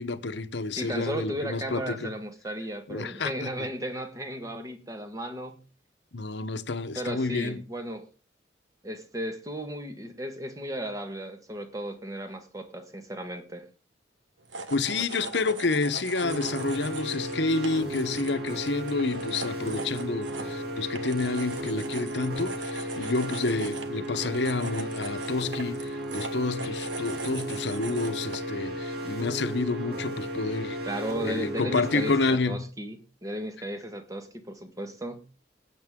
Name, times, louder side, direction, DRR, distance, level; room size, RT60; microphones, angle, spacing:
voice 1, 0.0-2.1 2.9-3.7 6.1-7.6 14.7-30.8 31.2-32.7, left 3 dB, 65° left, 0.9 m, -29 dB
voice 2, 0.8-5.6 6.9-8.1 8.8-13.7 30.8-35.2, right 1 dB, 20° right, 1.5 m, -35 dB
sound 1, 14.4-28.5, right 3 dB, 75° right, 1.5 m, -41 dB
sound 2, 16.2-32.3, equal, 60° right, 2.8 m, -35 dB
19.0 x 8.5 x 3.7 m
head